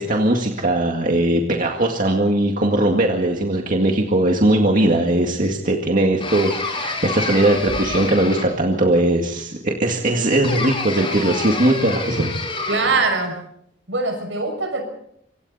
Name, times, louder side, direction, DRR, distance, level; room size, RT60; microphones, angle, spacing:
voice 1, 0.0-12.3, right 1 dB, 45° right, 1 dB, 2.0 m, -19 dB
sound 1, 6.2-8.8 10.4-13.1, left 3 dB, 30° left, 4.8 m, -28 dB
sound 2, 7.5-8.2 9.9-10.0 11.8-12.0 12.9-13.0, equal, ahead, 4.4 m, -35 dB
voice 2, 12.7-13.4 13.9-14.8, right 3 dB, 70° right, 5 dB, 6.6 m, -22 dB
26.5 x 25.0 x 4.2 m, 0.73 s
head